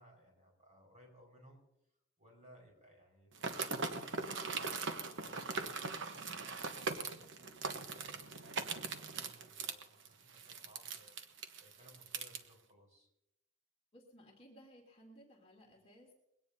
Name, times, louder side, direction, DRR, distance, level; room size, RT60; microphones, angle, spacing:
voice 1, 0.0-1.6 2.2-11.1 11.6-13.1, equal, 30° right, 0 dB, 5.5 m, -62 dB
sound 1, 3.3-12.4, right 4 dB, 55° right, 1.1 m, -40 dB
voice 2, 13.9-16.1, equal, 25° left, -1 dB, 3.0 m, -59 dB
22.0 x 17.5 x 2.8 m, 0.83 s
head